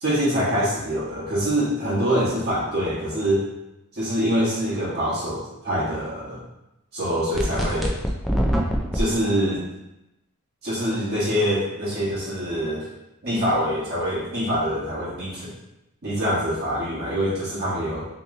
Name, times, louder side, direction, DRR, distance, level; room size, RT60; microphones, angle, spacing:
voice 1, 0.0-3.4 3.9-6.4 6.9-8.0 8.9-9.6 10.6-12.9 13.2-15.5 16.0-18.1, equal, 45° right, -9 dB, 1.2 m, -24 dB
sound 1, 7.3-9.0, equal, ahead, 0.3 m, -23 dB
3.0 x 2.8 x 3.7 m, 0.91 s
head